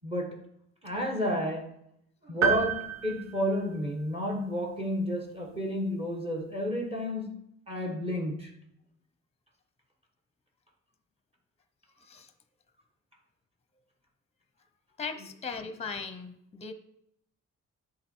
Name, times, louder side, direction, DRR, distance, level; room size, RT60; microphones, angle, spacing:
voice 1, 0.0-0.4 0.8-1.7 2.2-7.3 7.7-8.5, equal, 20° right, 1 dB, 1.3 m, -31 dB
sound 1, 2.4-4.2, right 6 dB, 70° right, 1.1 m, -30 dB
voice 2, 12.0-12.3 15.0-16.7, left 5 dB, 20° left, 9 dB, 0.7 m, -38 dB
10.5 x 3.9 x 4.5 m, 0.76 s
wide cardioid pair, 125°, 29 cm